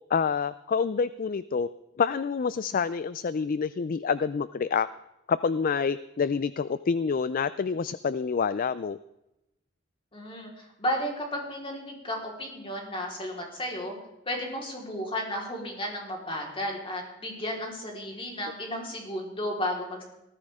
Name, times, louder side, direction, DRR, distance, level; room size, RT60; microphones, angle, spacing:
voice 1, 0.1-1.7 2.0-4.9 5.3-9.0, left 5 dB, 45° left, 16 dB, 0.4 m, -27 dB
voice 2, 10.1-13.9 14.3-20.0, equal, 30° left, -1 dB, 4.2 m, -33 dB
19.0 x 14.5 x 3.6 m, 0.91 s
head